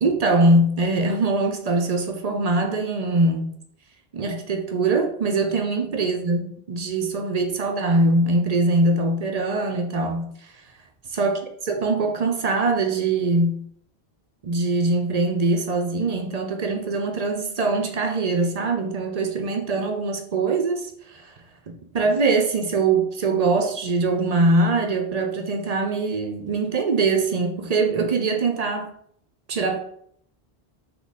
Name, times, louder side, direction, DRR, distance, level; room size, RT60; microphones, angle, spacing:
voice 1, 0.0-3.5 4.1-10.3 11.2-11.4 11.6-13.7 14.4-21.3 21.7-28.9 29.5-29.8, right 3 dB, 50° right, 5 dB, 0.5 m, -22 dB
3.6 x 3.1 x 4.0 m, 0.65 s
omnidirectional pair, 1.1 m